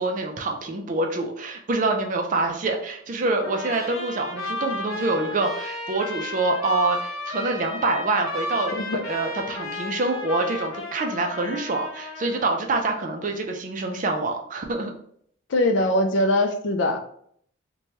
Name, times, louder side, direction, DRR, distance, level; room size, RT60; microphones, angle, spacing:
voice 1, 0.0-14.9, right 2 dB, 40° right, 3 dB, 0.4 m, -26 dB
Trumpet, 3.4-12.5, left 1 dB, 90° left, 0.7 m, -33 dB
voice 2, 8.7-9.0 15.5-17.0, left 1 dB, 60° left, 6 dB, 0.4 m, -22 dB
2.9 x 2.2 x 3.0 m, 0.64 s
head